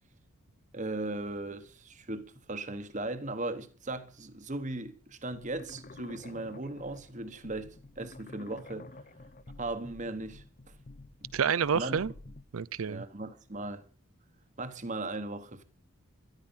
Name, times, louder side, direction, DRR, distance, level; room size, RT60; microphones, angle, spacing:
voice 1, 0.7-8.9 9.6-10.4 11.7-12.0 12.9-13.8 14.6-15.6, right 2 dB, 35° right, 1.2 m, -37 dB
sound 1, 5.3-12.4, left 2 dB, 40° left, 0.6 m, -50 dB
voice 2, 11.3-12.1 12.5-13.0, right 7 dB, 75° right, 0.5 m, -28 dB
13.0 x 12.0 x 5.6 m
head